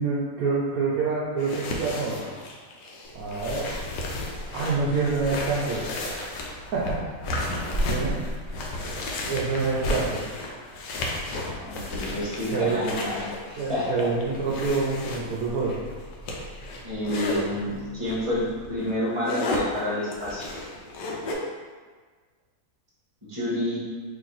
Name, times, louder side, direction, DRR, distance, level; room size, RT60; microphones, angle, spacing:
voice 1, 0.0-2.3 3.1-3.7 4.5-5.9 6.7-7.0 7.9-8.2 9.3-10.2 12.5-12.8 13.6-15.8, right 4 dB, 70° right, -6 dB, 0.9 m, -26 dB
sound 1, 1.4-17.5 18.1-18.3 18.7-21.3, left 2 dB, 80° left, 1.2 m, -33 dB
Dog, 3.0-18.8, equal, 50° left, 1.4 m, -40 dB
voice 2, 11.6-14.1 16.8-20.5 23.3-23.8, left 1 dB, 25° right, -7 dB, 0.7 m, -29 dB
3.0 x 3.0 x 3.9 m, 1.5 s
omnidirectional pair, 1.9 m